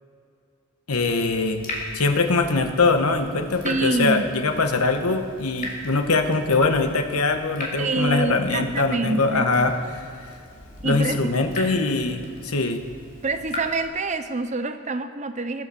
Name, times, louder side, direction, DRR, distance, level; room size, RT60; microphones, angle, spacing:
voice 1, 0.9-1.6 1.9-9.7 10.2-10.3 10.8-12.8, left 3 dB, 85° left, 6 dB, 1.3 m, -22 dB
Water tap faucet / Drip, 0.9-13.8, left 1 dB, 35° left, 2.7 m, -39 dB
voice 2, 3.6-4.3 7.8-9.5 10.8-11.3 13.2-15.7, right 3 dB, 30° right, 9 dB, 0.7 m, -26 dB
16.5 x 10.5 x 7.1 m, 2.3 s
head